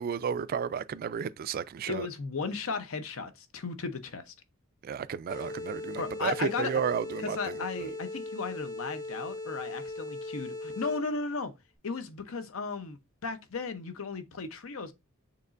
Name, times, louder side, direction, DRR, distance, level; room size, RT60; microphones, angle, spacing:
voice 1, 0.0-2.1 4.8-7.9, right 7 dB, 45° right, 0.3 m, -33 dB
voice 2, 1.9-4.3 6.0-6.7 7.3-11.5 11.8-14.9, left 4 dB, 80° left, 0.7 m, -35 dB
sound 1, 5.3-11.2, left 2 dB, 20° left, 0.7 m, -39 dB
6.5 x 3.0 x 2.5 m
head